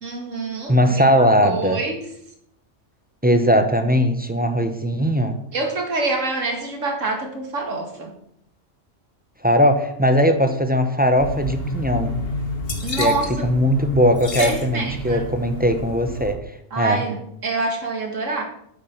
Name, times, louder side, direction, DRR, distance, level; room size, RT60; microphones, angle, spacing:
voice 1, 0.0-2.0 5.5-8.1 12.8-13.3 14.4-15.3 16.7-18.4, right 3 dB, 75° right, 3 dB, 2.3 m, -26 dB
voice 2, 0.7-1.8 3.2-5.4 9.4-12.2 13.0-16.4 16.7-17.0, equal, 10° right, 6 dB, 0.9 m, -19 dB
sound 1, 11.2-16.3, left 1 dB, 50° left, 1.8 m, -29 dB
8.6 x 8.6 x 6.0 m, 0.73 s
omnidirectional pair, 1.3 m